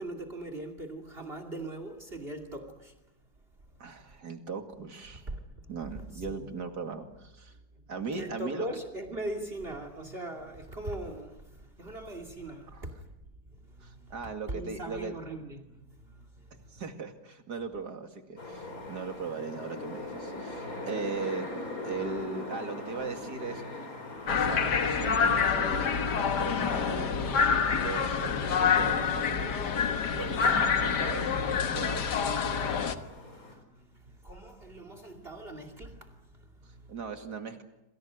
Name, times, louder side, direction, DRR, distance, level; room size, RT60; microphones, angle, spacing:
voice 1, 0.0-4.2 5.1-6.5 7.5-16.8 18.8-18.9 20.7-20.8 21.9-22.0 24.1-24.4 30.1-30.6 32.6-36.9, right 1 dB, 35° right, 7 dB, 2.9 m, -42 dB
voice 2, 3.8-5.3 5.7-7.5 7.9-8.7 13.8-15.2 16.5-21.5 21.8-23.6 24.3-29.5 30.2-31.3 31.5-32.0 36.9-37.6, right 5 dB, 80° right, 5 dB, 2.9 m, -38 dB
sound 1, 18.4-33.5, left 2 dB, 60° left, 5.3 m, -42 dB
sound 2, 24.3-32.9, left 6 dB, 90° left, 2.0 m, -27 dB
27.5 x 27.0 x 6.4 m, 0.97 s
omnidirectional pair, 1.7 m